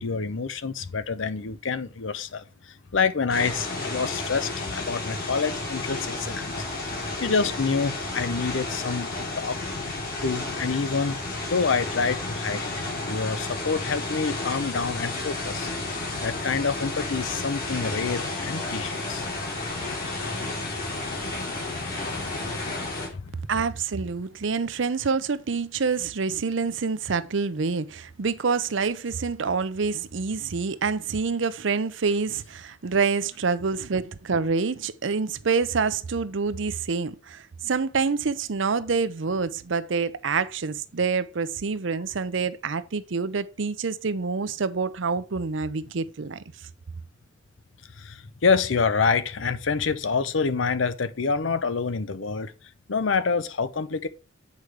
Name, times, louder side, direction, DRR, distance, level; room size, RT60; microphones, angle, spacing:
voice 1, 0.0-6.5 6.8-6.9 7.2-9.6 10.2-11.2 11.4-12.7 13.0-15.7 16.2-19.3 23.1-23.3 48.0-52.5 52.9-54.1, left 5 dB, 75° left, 0.7 m, -27 dB
sound 1, 3.3-23.1, left 2 dB, 50° left, 3.0 m, -32 dB
voice 2, 23.5-46.4, right 5 dB, 70° right, 0.6 m, -27 dB
8.2 x 5.0 x 4.7 m
head